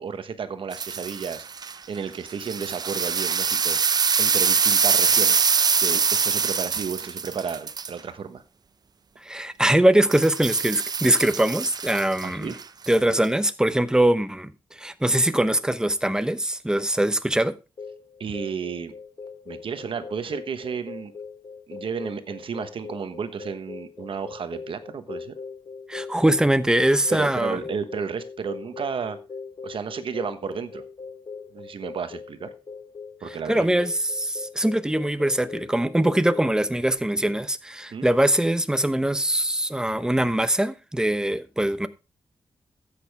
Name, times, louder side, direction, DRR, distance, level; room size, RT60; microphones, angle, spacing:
voice 1, 0.0-1.5 1.9-3.8 4.2-5.5 5.8-8.4 12.2-12.5 18.2-18.9 19.5-21.1 21.7-25.3 27.1-29.2 29.6-30.8 31.5-32.5 33.2-33.8 37.9-38.1, right 6 dB, 75° right, 1.2 m, -32 dB
sound 1, 0.7-1.7 2.3-7.9 10.1-12.9 13.2-13.3, right 6 dB, 45° right, 0.5 m, -24 dB
voice 2, 9.2-12.5 12.9-17.5 25.9-27.6 33.3-41.9, right 1 dB, 10° right, 0.9 m, -22 dB
sound 2, 17.8-36.9, left 5 dB, 55° left, 1.1 m, -41 dB
13.0 x 8.6 x 3.4 m
wide cardioid pair, 90°, 9 cm